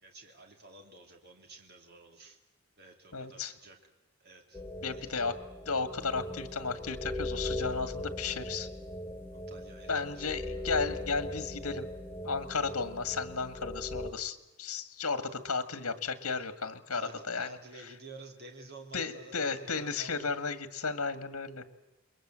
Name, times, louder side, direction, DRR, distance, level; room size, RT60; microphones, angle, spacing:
voice 1, 0.0-2.4 2.8-3.8 4.2-4.6 4.9-5.1 9.3-10.4 14.2-14.3 16.2-16.5 16.9-20.3, right 2 dB, 45° right, 3 dB, 2.9 m, -51 dB
voice 2, 3.1-3.5 4.8-5.4 5.7-8.7 9.9-11.9 12.2-17.6 18.9-21.7, left 4 dB, 80° left, 12 dB, 2.0 m, -34 dB
sound 1, 4.5-14.1, left 1 dB, 10° left, 1.3 m, -39 dB
28.5 x 22.5 x 7.6 m, 1.0 s
head